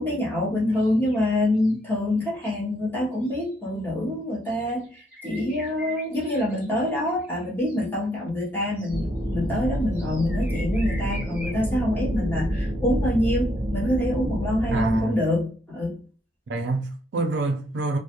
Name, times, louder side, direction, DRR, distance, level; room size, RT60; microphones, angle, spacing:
voice 1, 0.0-16.0, left 1 dB, 10° left, 0.8 m, -26 dB
sound 1, 0.7-1.2 1.5-1.9 2.4-2.6 3.1-3.5 4.5-7.8 8.8-9.0 9.9-11.6, equal, 10° right, 1.1 m, -43 dB
sound 2, 8.9-15.0, equal, 30° right, 0.7 m, -28 dB
voice 2, 14.7-15.2 16.5-18.0, right 3 dB, 70° right, 0.4 m, -27 dB
2.3 x 2.0 x 2.8 m
head